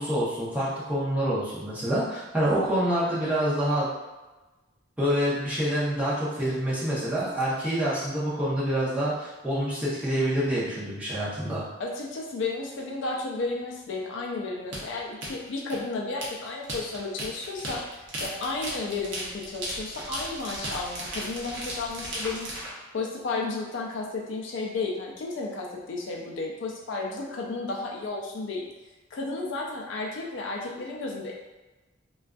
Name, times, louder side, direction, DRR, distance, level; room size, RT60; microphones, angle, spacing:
voice 1, 0.0-3.9 5.0-11.7, equal, 5° right, -10 dB, 0.7 m, -27 dB
voice 2, 11.8-22.5 22.9-28.6 29.1-31.3, left 3 dB, 60° left, -1 dB, 0.4 m, -33 dB
sound 1, 14.7-22.7, right 1 dB, 60° right, 0.7 m, -36 dB
2.5 x 2.3 x 2.3 m, 1.1 s
head